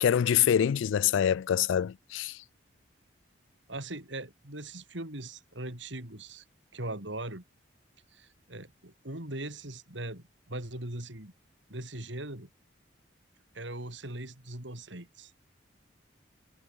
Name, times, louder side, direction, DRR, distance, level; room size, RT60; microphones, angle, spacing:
voice 1, 0.0-2.4, left 9 dB, 80° left, 0.3 m, -25 dB
voice 2, 3.7-6.4 6.7-7.4 8.1-11.3 11.7-12.5 13.5-15.3, right 1 dB, 70° right, 4.7 m, -40 dB
head